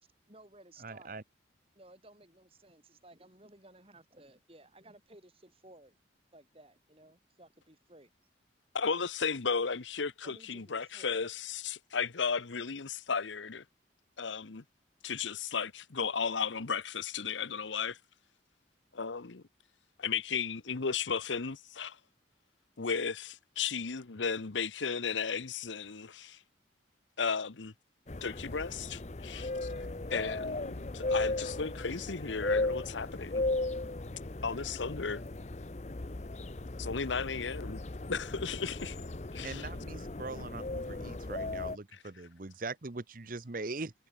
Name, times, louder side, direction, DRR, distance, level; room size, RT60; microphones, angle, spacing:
voice 1, 0.3-1.1 1.7-6.0 6.3-8.1 10.2-11.2, right 1 dB, 30° right, 7.9 m, -57 dB
voice 2, 0.8-1.2 39.4-43.9, right 3 dB, 45° right, 0.9 m, -41 dB
voice 3, 8.7-13.6 14.2-14.6 15.0-18.0 18.9-19.4 20.0-22.0 22.8-26.4 27.2-27.7 28.2-29.7 30.1-33.4 34.4-35.2 36.8-37.8 38.1-39.0 39.3-39.7 40.3-40.4, left 5 dB, 85° left, 1.0 m, -35 dB
sound 1, 28.1-41.8, left 2 dB, 35° left, 0.8 m, -36 dB
head